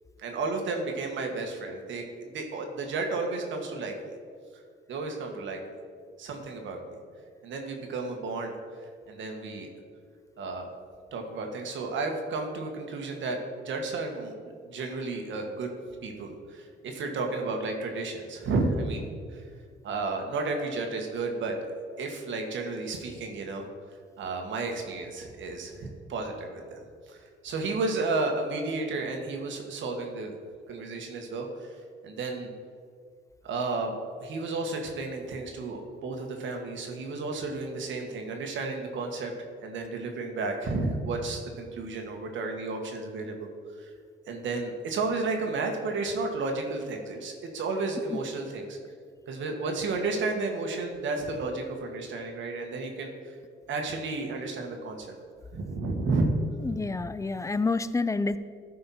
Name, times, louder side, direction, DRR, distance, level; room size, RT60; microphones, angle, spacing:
voice 1, 0.2-4.1 4.9-5.6 6.2-7.0 7.4-8.5 8.8-9.7 10.4-10.7 11.1-14.3 14.6-15.7 16.0-19.1 19.3-19.4 19.8-21.5 22.0-23.6 24.2-27.2 27.4-30.3 30.7-31.7 32.0-32.5 33.4-39.3 39.6-43.5 43.8-43.9 44.3-48.8 49.3-53.3 53.7-55.1 55.5-56.3, right 3 dB, 70° right, 3 dB, 1.6 m, -32 dB
voice 2, 56.6-58.4, left 3 dB, 15° left, 14 dB, 0.4 m, -28 dB
13.5 x 5.6 x 4.3 m, 2.1 s
cardioid pair, 90°, 20 cm